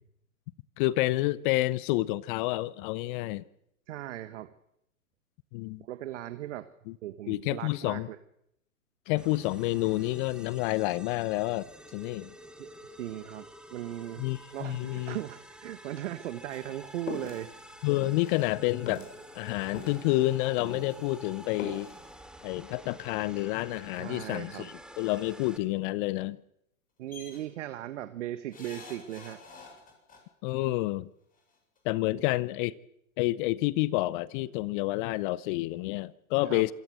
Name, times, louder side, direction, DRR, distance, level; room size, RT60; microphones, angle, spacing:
voice 1, 0.8-3.4 5.5-5.8 6.9-7.0 7.3-8.1 9.1-12.3 14.2-15.2 17.8-19.0 19.3-21.9 22.4-26.4 30.4-31.1 31.8-32.8 33.2-36.7, left 18 dB, 35° left, 0.8 m, -29 dB
voice 2, 3.9-4.5 5.9-6.7 7.0-8.2 12.6-12.7 13.0-14.3 14.5-17.5 23.9-24.7 27.0-29.4 32.1-32.2 36.4-36.7, right 13 dB, 60° right, 1.4 m, -38 dB
sound 1, 9.2-25.6, right 1 dB, ahead, 1.9 m, -49 dB
sound 2, 16.5-21.1 21.4-22.0, left 4 dB, 65° left, 6.4 m, -42 dB
sound 3, 27.1-27.4 28.5-30.2 31.4-31.5 31.8-31.9, left 4 dB, 20° left, 7.6 m, -47 dB
26.5 x 16.5 x 7.7 m
hypercardioid pair, 110°, 42 cm